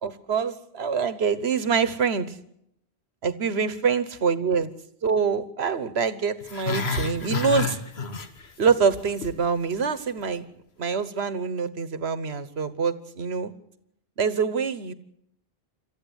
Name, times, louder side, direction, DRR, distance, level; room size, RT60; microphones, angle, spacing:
voice 1, 0.0-2.3 3.2-4.7 5.0-7.8 8.6-10.4 10.8-13.5 14.2-14.9, right 6 dB, 90° right, 14 dB, 1.4 m, -25 dB
Growling, 6.4-8.7 9.0-9.4 9.7-9.8, left 5 dB, 80° left, 1.7 m, -29 dB
27.0 x 14.0 x 8.1 m, 0.76 s
omnidirectional pair, 1.0 m